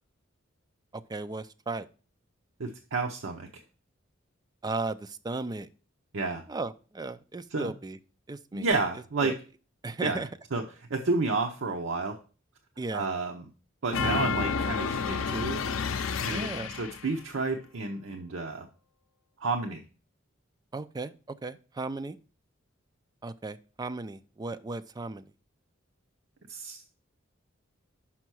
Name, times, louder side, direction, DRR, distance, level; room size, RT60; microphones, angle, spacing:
voice 1, 0.9-1.9 4.6-5.7 6.5-8.0 8.3-8.7 9.2-9.3 9.8-10.3 12.8-13.1 16.2-16.7 20.7-22.2 23.2-25.3, right 3 dB, 20° right, 11 dB, 0.4 m, -36 dB
voice 2, 2.6-3.5 6.1-6.4 7.5-7.7 8.5-9.3 10.0-10.2 10.5-10.6 10.9-12.2 12.9-13.4 13.8-15.6 16.2-16.5 16.7-18.7 19.4-19.8 26.5-26.9, right 3 dB, 70° right, 3 dB, 0.7 m, -30 dB
sound 1, 13.9-17.1, left 5 dB, 80° left, 0.5 m, -30 dB
5.8 x 5.4 x 6.1 m, 0.38 s
head